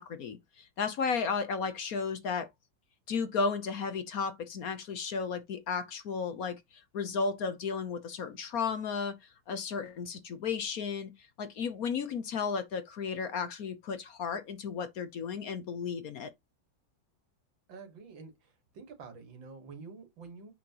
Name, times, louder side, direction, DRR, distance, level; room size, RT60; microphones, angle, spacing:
voice 1, 0.0-2.5 3.1-9.2 9.5-11.1 11.4-16.3, left 5 dB, 55° left, 1.2 m, -34 dB
voice 2, 17.7-18.3 18.7-20.5, right 4 dB, 85° right, 2.5 m, -47 dB
7.6 x 5.7 x 2.9 m
omnidirectional pair, 2.0 m